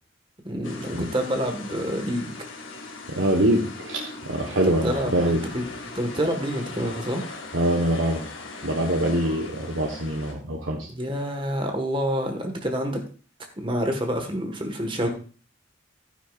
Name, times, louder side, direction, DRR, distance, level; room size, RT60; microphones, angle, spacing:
voice 1, 0.4-2.3 4.8-5.6 5.9-7.2 10.9-13.0 13.6-15.1, equal, 25° right, 4 dB, 1.6 m, -27 dB
sound 1, 0.6-10.3, left 3 dB, 85° left, 2.0 m, -39 dB
voice 2, 3.1-5.4 7.5-8.3 8.6-10.9, right 1 dB, 75° right, 1 dB, 1.3 m, -24 dB
11.5 x 10.0 x 2.5 m, 0.39 s
head